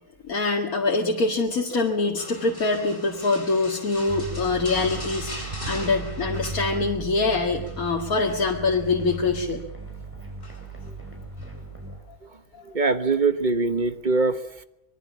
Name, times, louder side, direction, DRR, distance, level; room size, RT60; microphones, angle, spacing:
voice 1, 0.2-9.6, left 3 dB, 90° left, 0 dB, 2.4 m, -24 dB
sound 1, 2.2-7.2 7.4-7.8 8.2-9.3 10.4-10.9 11.4-11.5, left 1 dB, 40° left, 7.8 m, -40 dB
sound 2, 4.1-12.0, right 2 dB, 10° right, 6.2 m, -36 dB
voice 2, 12.6-14.6, right 3 dB, 35° right, 10 dB, 1.3 m, -23 dB
25.5 x 22.0 x 7.3 m, 0.81 s
omnidirectional pair, 1.5 m